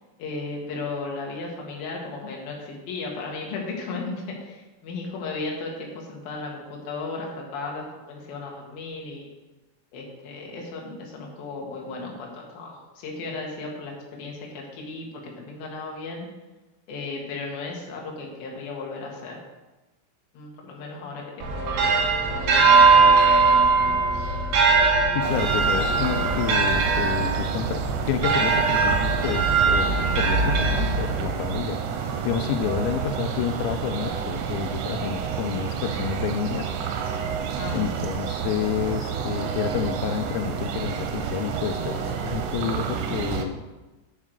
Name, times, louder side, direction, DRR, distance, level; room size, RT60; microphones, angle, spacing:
voice 1, 0.2-4.2 4.4-9.3 9.9-16.3 16.9-19.4 20.3-24.0 30.0-30.1 32.4-32.7 37.5-38.1, left 3 dB, 55° left, -1 dB, 3.0 m, -35 dB
bells.slowing church close, 21.4-31.3, right 4 dB, 65° right, 3.4 m, -20 dB
voice 2, 25.1-31.8 32.2-36.7 37.7-43.6, left 9 dB, 90° left, 10 dB, 3.3 m, -29 dB
sound 1, 25.2-43.4, right 7 dB, 85° right, 3.4 m, -29 dB
7.6 x 7.2 x 6.6 m, 1.1 s
omnidirectional pair, 5.9 m